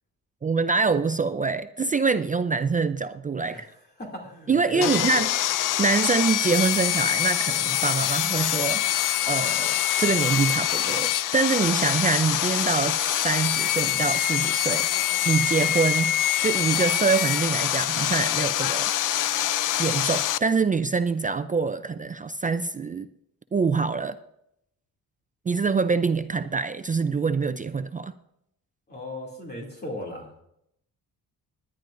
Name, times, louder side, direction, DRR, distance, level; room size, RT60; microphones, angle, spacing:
voice 1, 0.4-3.7 4.5-5.3 5.6-14.9 15.2-16.2 16.4-18.9 19.8-23.1 23.5-24.2 25.5-28.1, right 4 dB, 25° right, 10 dB, 0.4 m, -25 dB
voice 2, 4.0-5.3 28.9-30.3, left 1 dB, 25° left, -1 dB, 2.6 m, -35 dB
Sawing, 4.8-20.4, left 12 dB, 60° left, 0.5 m, -25 dB
20.0 x 11.0 x 2.6 m, 0.77 s
cardioid pair, 125°, 36 cm